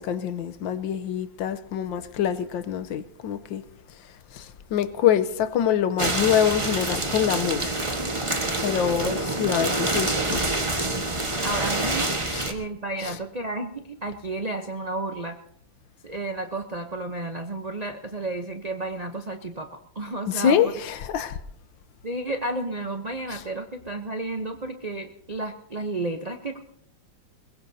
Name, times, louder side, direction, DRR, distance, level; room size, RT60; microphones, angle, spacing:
voice 1, 0.0-3.6 4.3-7.9 8.6-10.6 12.3-12.5 13.0-13.1 20.3-21.4 23.3-23.4, left 9 dB, 75° left, 1.5 m, -25 dB
sound 1, 6.0-12.5, right 2 dB, 20° right, 1.1 m, -26 dB
voice 2, 11.4-12.1 12.5-15.4 16.0-19.7 19.9-20.7 22.0-26.6, right 2 dB, 75° right, 0.3 m, -32 dB
22.0 x 21.5 x 2.7 m
omnidirectional pair, 2.1 m